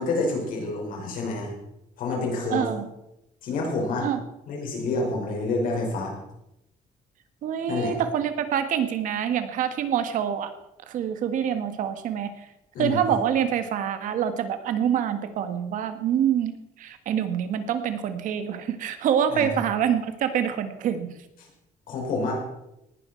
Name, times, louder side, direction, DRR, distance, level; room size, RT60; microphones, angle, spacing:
voice 1, 0.0-1.5 2.0-2.7 3.4-4.1 4.5-6.1 7.7-7.9 12.7-13.0 19.3-19.5 21.9-22.4, left 3 dB, 80° left, -1 dB, 5.6 m, -28 dB
voice 2, 2.5-2.9 4.0-4.2 7.4-10.5 10.9-12.5 12.8-21.1, right 9 dB, 70° right, 9 dB, 1.6 m, -26 dB
19.0 x 11.0 x 4.6 m, 0.87 s
cardioid pair, 175°, 14 cm